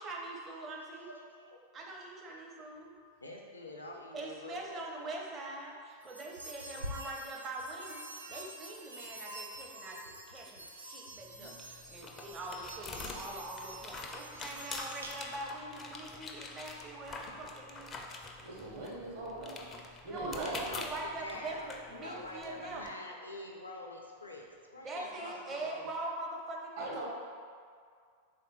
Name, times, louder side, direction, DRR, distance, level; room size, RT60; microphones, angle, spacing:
voice 1, 0.0-1.1 1.7-3.0 4.1-17.9 20.1-22.9 24.8-27.1, right 2 dB, 25° right, -1 dB, 0.6 m, -43 dB
voice 2, 0.9-1.6 3.2-5.1 20.5-25.9, left 1 dB, 80° left, 0 dB, 0.5 m, -46 dB
sound 1, 6.0-15.5, right 1 dB, 80° right, 0.5 m, -47 dB
sound 2, 11.2-22.9, left 3 dB, 25° left, 0.4 m, -46 dB
voice 3, 18.4-19.6 20.0-20.7 26.8-27.1, right 2 dB, 55° right, -4 dB, 1.1 m, -40 dB
3.5 x 2.5 x 4.2 m, 2.1 s
figure-of-eight pair, 90°, 0 cm